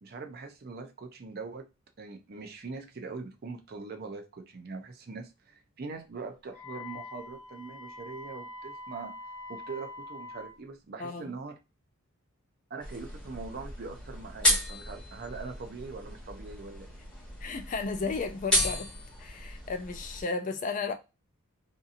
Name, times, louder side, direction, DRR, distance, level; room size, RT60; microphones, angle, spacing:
voice 1, 0.0-1.7 2.0-9.1 9.5-11.5 12.7-17.0, right 4 dB, 45° right, 0.5 m, -42 dB
Wind instrument woodwind instrument, 6.5-10.6, left 2 dB, 75° left, 0.8 m, -44 dB
voice 2, 11.0-11.3 17.4-18.9 19.2-20.9, left 4 dB, 35° left, 0.3 m, -34 dB
sound 1, 12.8-20.2, equal, 5° left, 1.1 m, -33 dB
2.7 x 2.6 x 2.4 m
head